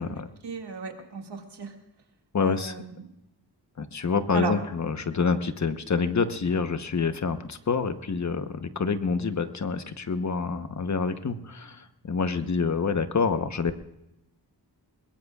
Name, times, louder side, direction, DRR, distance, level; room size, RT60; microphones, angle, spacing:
voice 1, 0.4-1.7 2.4-3.1 4.3-4.6, right 4 dB, 75° right, 3 dB, 2.2 m, -34 dB
voice 2, 2.3-2.7 3.8-13.8, left 5 dB, 45° left, 9 dB, 1.0 m, -27 dB
22.0 x 22.0 x 2.4 m, 0.88 s
wide cardioid pair, 135°, 40 cm